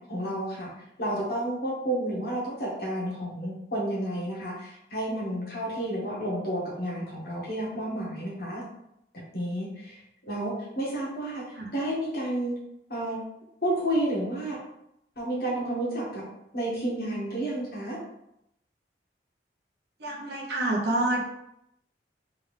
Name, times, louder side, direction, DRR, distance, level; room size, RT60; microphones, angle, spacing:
voice 1, 0.1-0.7 1.0-8.6 9.3-10.0 10.3-11.4 11.7-12.5 12.9-13.2 13.6-14.6 15.2-16.2 16.5-18.0, right 1 dB, 55° left, -5 dB, 1.5 m, -31 dB
voice 2, 20.0-21.2, right 1 dB, 65° right, -1 dB, 0.8 m, -27 dB
3.4 x 3.3 x 3.3 m, 0.81 s
head